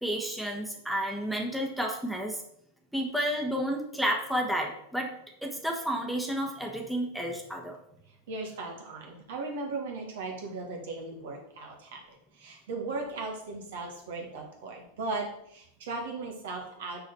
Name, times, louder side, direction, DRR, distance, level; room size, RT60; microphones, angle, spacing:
voice 1, 0.0-2.4 2.9-5.1 5.4-7.8, equal, ahead, 0 dB, 1.3 m, -31 dB
voice 2, 8.3-17.0, right 3 dB, 65° right, 1 dB, 1.9 m, -37 dB
6.2 x 5.1 x 5.5 m, 0.73 s
figure-of-eight pair, 90°, 0 cm